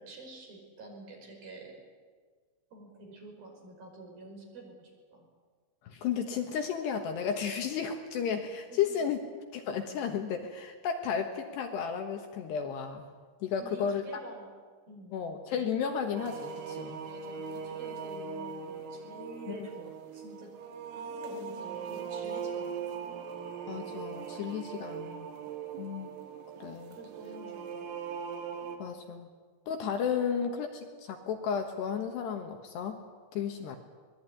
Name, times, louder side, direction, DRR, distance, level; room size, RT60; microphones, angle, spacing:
voice 1, 0.0-1.8 2.7-5.3 8.7-8.8 13.6-14.5 14.9-15.2 17.0-20.5 20.9-23.2 26.9-27.9, right 2 dB, 50° right, 1 dB, 7.1 m, -48 dB
voice 2, 5.8-9.2 9.5-13.0 13.4-14.0 15.1-17.0 19.5-19.7 23.7-25.3 25.8-26.1 26.6-27.0 28.8-29.3 29.7-33.0 33.3-33.8, left 7 dB, 65° left, 5 dB, 3.2 m, -33 dB
sound 1, 16.1-28.8, right 6 dB, 90° right, 4.6 m, -40 dB
24.5 x 20.5 x 9.7 m, 1.5 s
omnidirectional pair, 5.7 m